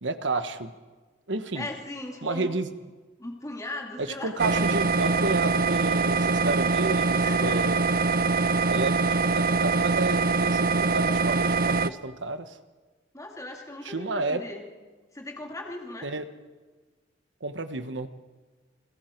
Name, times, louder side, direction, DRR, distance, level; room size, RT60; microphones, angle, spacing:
voice 1, 0.0-0.7 1.3-1.7 2.2-2.7 4.0-7.8 8.7-12.6 13.8-14.4 16.0-16.2 17.4-18.1, right 3 dB, 70° right, 10 dB, 1.2 m, -31 dB
voice 2, 1.5-2.5 3.2-4.3 7.2-7.7 13.1-14.7 15.1-16.1, left 2 dB, 20° left, 1 dB, 2.6 m, -37 dB
sound 1, 4.4-11.9, right 4 dB, 50° right, 0.7 m, -23 dB
29.0 x 21.5 x 4.6 m, 1.3 s
head